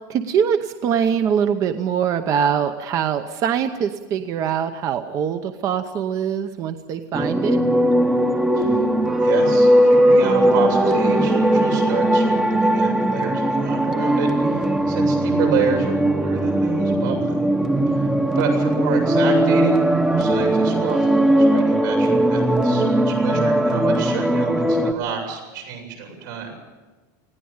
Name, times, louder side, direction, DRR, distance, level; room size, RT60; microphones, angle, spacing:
voice 1, 0.1-7.6 10.1-10.2 17.7-18.1, right 8 dB, 35° right, 8 dB, 0.8 m, -23 dB
sound 1, 7.1-24.9, right 1 dB, 5° right, 0.9 m, -19 dB
voice 2, 9.2-17.4 17.9-18.1 18.3-19.8 20.2-26.5, right 6 dB, 85° right, 1 dB, 7.9 m, -29 dB
20.0 x 15.5 x 8.9 m, 1.2 s
supercardioid pair, 165°, 10 cm